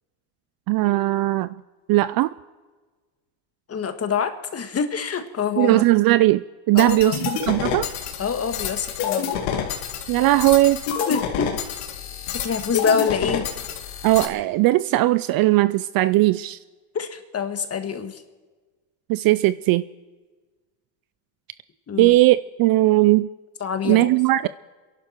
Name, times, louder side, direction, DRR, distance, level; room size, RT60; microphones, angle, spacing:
voice 1, 0.7-1.6 1.9-2.3 5.6-7.9 10.1-10.8 14.0-16.6 19.1-19.8 22.0-23.3 23.8-24.5, right 17 dB, 50° right, 0.4 m, -18 dB
voice 2, 3.7-5.8 6.7-7.1 8.2-9.3 11.1-11.5 12.3-13.5 16.9-18.2 21.9-22.1 23.6-24.1, left 6 dB, 30° left, 1.7 m, -26 dB
sound 1, 6.8-14.3, left 8 dB, 75° left, 2.1 m, -28 dB
27.0 x 11.5 x 4.5 m
supercardioid pair, 110°, 49 cm